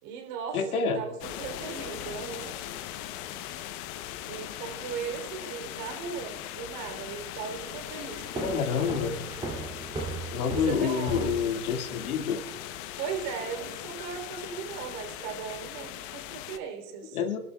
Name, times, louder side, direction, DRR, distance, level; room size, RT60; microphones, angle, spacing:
voice 1, 0.0-2.5 4.3-9.0 10.5-11.4 13.0-17.2, right 6 dB, 45° right, 3 dB, 3.3 m, -37 dB
voice 2, 0.5-1.0 8.4-9.2 10.3-12.4 17.1-17.4, left 6 dB, 65° left, 6 dB, 1.9 m, -28 dB
sound 1, 1.2-16.6, left 12 dB, 30° left, 0.8 m, -40 dB
sound 2, 8.3-12.0, right 3 dB, 10° right, 2.4 m, -36 dB
26.0 x 12.5 x 2.3 m, 1.1 s
hypercardioid pair, 115°, 45 cm